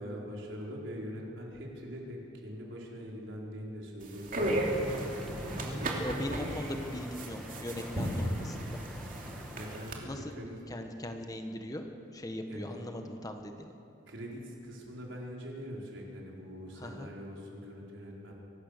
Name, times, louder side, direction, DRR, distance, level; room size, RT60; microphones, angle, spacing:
voice 1, 0.0-5.0 5.4-6.8 9.3-10.6 12.5-12.8 14.1-18.3, equal, 70° right, -2 dB, 4.7 m, -43 dB
sound 1, 4.0-10.0, right 1 dB, 45° right, 2.9 m, -35 dB
sound 2, 4.4-9.8, equal, ahead, 1.7 m, -42 dB
voice 2, 5.6-8.8 10.0-10.3 10.7-11.8 12.1-13.7 16.8-17.1, left 1 dB, 20° left, 5 dB, 1.3 m, -40 dB
24.0 x 19.0 x 6.7 m, 2.9 s
head